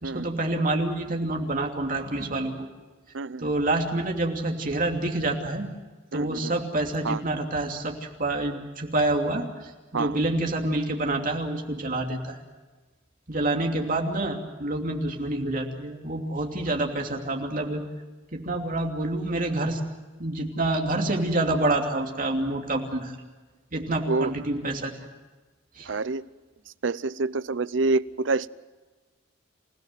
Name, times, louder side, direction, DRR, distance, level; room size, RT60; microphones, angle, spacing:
voice 1, 0.0-2.7 3.4-5.7 6.1-12.4 13.3-17.8 18.3-19.8 20.2-23.1 23.7-24.9 25.8-25.9, right 2 dB, 45° right, 2 dB, 2.9 m, -27 dB
voice 2, 3.1-3.5 6.1-6.5 7.0-7.2 9.9-10.2 24.1-24.3 25.9-26.3 26.8-28.5, right 3 dB, 70° right, 18 dB, 0.6 m, -27 dB
28.0 x 17.0 x 7.8 m, 1.3 s
head